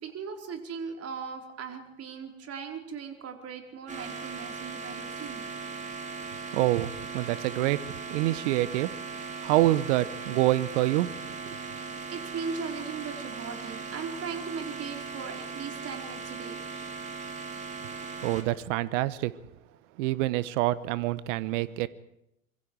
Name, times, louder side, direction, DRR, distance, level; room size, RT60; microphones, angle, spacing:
voice 1, 0.0-5.5 11.7-16.6, right 6 dB, 35° right, 4 dB, 4.7 m, -38 dB
sound 1, 3.9-18.4, right 4 dB, 15° right, 4.3 m, -38 dB
voice 2, 6.5-8.9 9.4-11.1 11.5-11.6 18.2-19.3 20.0-21.9, right 16 dB, 60° right, 17 dB, 1.2 m, -26 dB
26.5 x 23.5 x 4.8 m, 0.80 s
hypercardioid pair, 85°, 43 cm